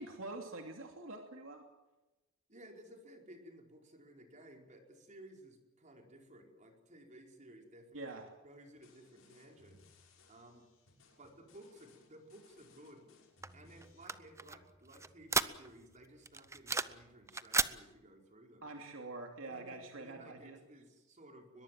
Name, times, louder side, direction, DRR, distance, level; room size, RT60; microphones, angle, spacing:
voice 1, 0.0-1.6 7.9-8.2 18.6-20.6, right 2 dB, 70° right, 3 dB, 2.9 m, -45 dB
voice 2, 2.5-8.1 8.4-9.8 10.3-10.6 11.2-13.1 13.5-18.7 19.4-21.6, right 1 dB, 35° right, 2 dB, 4.9 m, -57 dB
sound 1, 8.7-14.1, left 3 dB, 75° left, 6.2 m, -65 dB
sound 2, 13.4-15.9 16.3-17.0 17.3-17.7, right 4 dB, 15° right, 0.8 m, -35 dB
22.0 x 22.0 x 7.7 m, 1.0 s
head